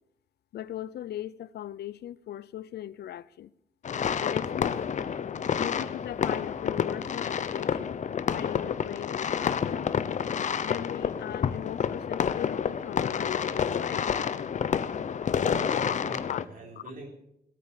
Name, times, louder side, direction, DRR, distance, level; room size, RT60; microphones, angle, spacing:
voice 1, 0.5-3.5 4.2-4.8 5.6-8.0 8.3-9.9 10.6-14.1 15.7-16.0 16.3-16.4, left 12 dB, 85° left, 0.6 m, -38 dB
sound 1, 3.8-16.4, left 7 dB, 50° left, 0.8 m, -29 dB
voice 2, 15.3-17.1, right 2 dB, 55° right, 3.9 m, -43 dB
17.0 x 8.8 x 8.4 m
wide cardioid pair, 145°, 16 cm